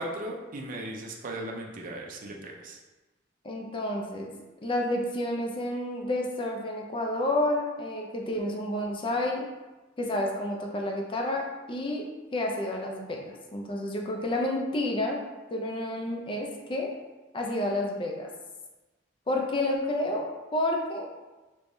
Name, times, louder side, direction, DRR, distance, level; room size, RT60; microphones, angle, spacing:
voice 1, 0.0-2.8, right 1 dB, 45° right, 0 dB, 0.5 m, -37 dB
voice 2, 3.4-9.5 10.0-12.1 12.3-15.2 15.5-16.9 17.3-18.3 19.3-21.1, left 1 dB, 25° left, 0 dB, 0.5 m, -30 dB
3.3 x 3.2 x 2.6 m, 1.2 s
head